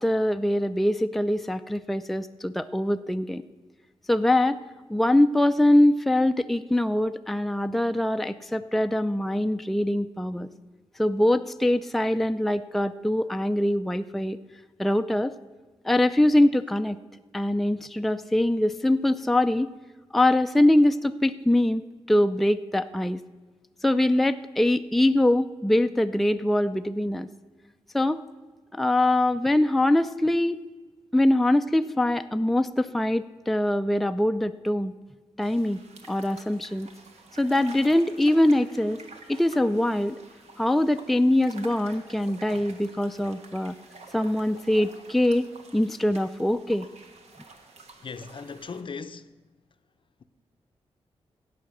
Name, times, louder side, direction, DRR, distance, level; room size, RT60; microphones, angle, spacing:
voice 1, 0.0-3.4 4.1-4.6 4.9-10.5 11.0-14.4 14.8-15.3 15.9-17.0 17.3-19.7 20.1-21.8 22.1-23.2 23.8-27.3 27.9-28.2 28.7-30.6 31.1-34.9 35.4-35.8 36.1-36.9 37.4-39.0 39.3-40.2 40.6-43.8 44.1-45.4 45.7-46.9, left 1 dB, ahead, 0.4 m, -23 dB
sound 1, 35.4-48.8, right 3 dB, 80° right, 1.3 m, -49 dB
voice 2, 48.0-49.3, left 5 dB, 50° left, 0.6 m, -38 dB
16.5 x 5.6 x 6.4 m
cardioid pair, 65°, 11 cm